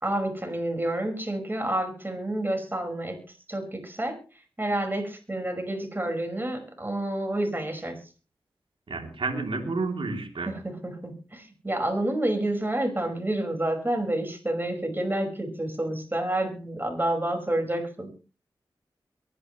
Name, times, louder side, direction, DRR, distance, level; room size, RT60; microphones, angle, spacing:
voice 1, 0.0-3.2 3.5-4.2 4.6-8.0 10.5-18.2, right 1 dB, 20° right, 4 dB, 5.5 m, -29 dB
voice 2, 8.9-10.6, right 3 dB, 75° right, 3 dB, 3.1 m, -30 dB
23.0 x 11.0 x 3.2 m, 0.35 s
cardioid pair, 50°, 9 cm